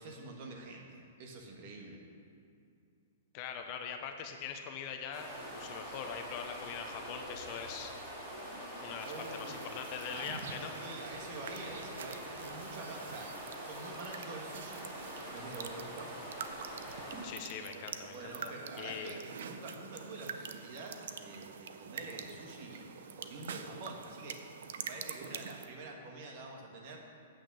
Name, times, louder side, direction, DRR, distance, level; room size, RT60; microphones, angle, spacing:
voice 1, 0.0-2.0 9.0-9.6 10.1-10.3 10.6-16.2 18.0-24.4 24.8-27.0, right 2 dB, 45° right, 1 dB, 1.5 m, -47 dB
voice 2, 3.3-7.9 8.8-10.9 17.2-19.2, left 7 dB, 35° left, 5 dB, 0.7 m, -42 dB
sound 1, 5.1-17.2, equal, 15° right, 2.1 m, -45 dB
sound 2, 9.0-25.7, right 7 dB, 70° right, 0.6 m, -46 dB
8.4 x 6.3 x 6.2 m, 2.4 s
hypercardioid pair, 155°, 0 cm